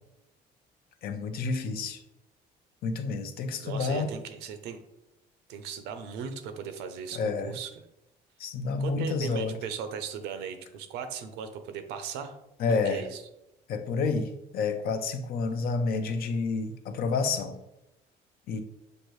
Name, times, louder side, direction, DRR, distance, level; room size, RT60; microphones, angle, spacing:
voice 1, 1.0-2.0 2.8-4.1 7.1-7.5 8.4-9.6 12.6-13.0 13.7-17.6 18.5-18.6, left 4 dB, 65° left, 7 dB, 0.6 m, -29 dB
voice 2, 3.6-4.8 5.5-7.8 8.8-12.4 12.7-13.2, right 7 dB, 90° right, 8 dB, 0.6 m, -38 dB
6.4 x 2.6 x 3.1 m, 0.88 s
cardioid pair, 110°, 17 cm